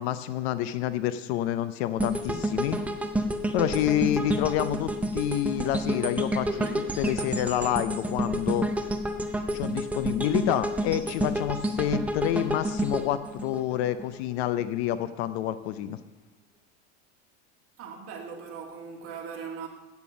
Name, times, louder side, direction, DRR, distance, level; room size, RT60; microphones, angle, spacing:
voice 1, 0.0-2.8 3.5-6.7 7.0-8.7 9.5-16.0, left 12 dB, 60° left, 0.7 m, -28 dB
sound 1, 2.0-14.2 14.6-14.8, right 1 dB, 5° right, 0.4 m, -29 dB
voice 2, 6.5-6.8 17.8-19.7, right 6 dB, 40° right, 1.9 m, -39 dB
8.3 x 7.0 x 7.1 m
supercardioid pair, 150°, 35 cm